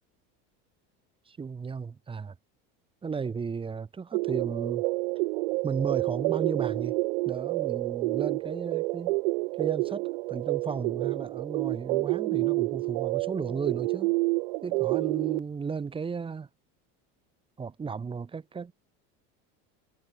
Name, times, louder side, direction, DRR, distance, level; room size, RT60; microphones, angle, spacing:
voice 1, 1.3-2.3 3.0-4.9 5.6-7.0 7.3-9.1 9.6-14.1 14.6-16.5 17.6-18.7, right 5 dB, 15° right, 7.3 m, -34 dB
sound 1, 4.1-15.4, right 26 dB, 85° right, 1.9 m, -29 dB
cardioid pair, 170°, 33 cm